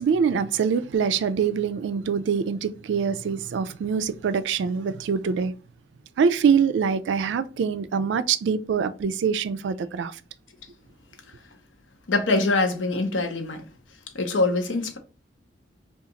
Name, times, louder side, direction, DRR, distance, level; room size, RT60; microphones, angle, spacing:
voice 1, 0.0-5.5 6.2-10.2, right 6 dB, 75° right, 0.3 m, -24 dB
voice 2, 12.1-13.6 14.1-15.0, left 3 dB, 85° left, 0.7 m, -24 dB
2.8 x 2.4 x 3.8 m
head